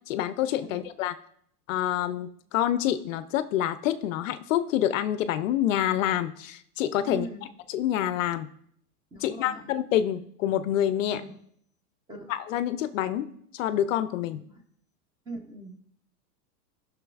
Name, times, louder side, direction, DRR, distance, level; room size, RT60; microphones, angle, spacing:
voice 1, 0.1-1.1 1.7-7.3 7.7-8.5 9.2-11.2 12.3-13.3 13.5-14.4, left 11 dB, 55° left, 13 dB, 0.5 m, -27 dB
voice 2, 7.0-7.5 9.1-9.7 11.1-11.4 12.1-12.3 14.5-14.6 15.3-15.8, right 2 dB, 10° right, 2 dB, 0.5 m, -40 dB
13.0 x 6.0 x 2.3 m, 0.67 s
hypercardioid pair, 130°, 50 cm